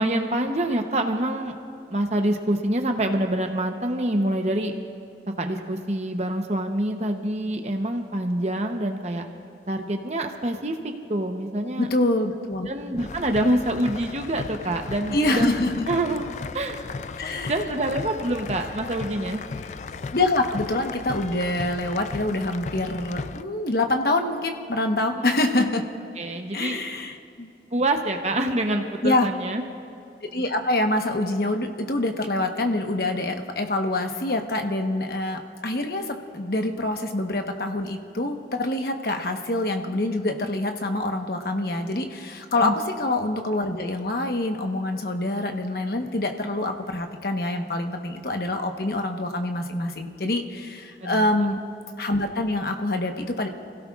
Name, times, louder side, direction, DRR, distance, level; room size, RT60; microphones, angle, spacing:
voice 1, 0.0-1.5 1.9-4.7 5.4-9.3 9.7-11.9 12.7-15.6 15.9-16.3 16.5-16.8 17.3-19.4 25.2-25.7 26.2-26.8 27.7-29.6 42.5-42.7 51.0-51.3, right 1 dB, 40° right, 4 dB, 0.8 m, -26 dB
voice 2, 11.8-12.7 15.1-15.8 17.2-17.5 20.1-25.8 26.5-27.5 29.0-29.3 30.3-42.7 43.0-51.6 52.0-53.5, left 2 dB, 60° left, 4 dB, 1.1 m, -26 dB
sound 1, 13.0-23.4, left 4 dB, 40° left, 0.3 m, -36 dB
28.0 x 16.5 x 2.4 m, 2.8 s
head